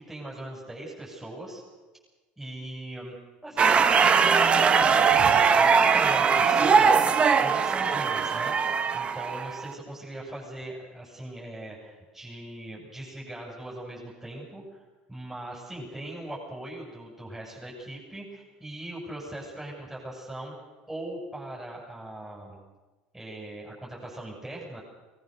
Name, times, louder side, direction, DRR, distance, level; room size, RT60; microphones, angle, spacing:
voice 1, 0.0-1.6 2.4-3.2 3.4-14.6 15.1-20.5 20.9-22.6 23.1-24.8, right 1 dB, 5° right, -4 dB, 7.2 m, -40 dB
sound 1, 3.6-9.7, right 6 dB, 30° right, 1.3 m, -21 dB
22.0 x 20.0 x 6.8 m, 1.2 s
supercardioid pair, 110°, 4 cm